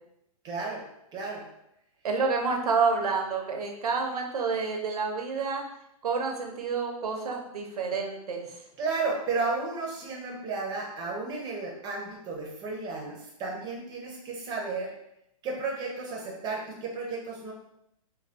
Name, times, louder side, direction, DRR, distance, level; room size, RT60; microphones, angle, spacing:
voice 1, 0.4-0.8 1.1-1.4 8.8-14.9 15.4-17.5, right 3 dB, 20° right, -1 dB, 0.7 m, -33 dB
voice 2, 2.0-5.6 6.0-8.5, right 4 dB, 85° right, 2 dB, 0.7 m, -29 dB
2.7 x 2.2 x 3.2 m, 0.80 s
hypercardioid pair, 140°, 19 cm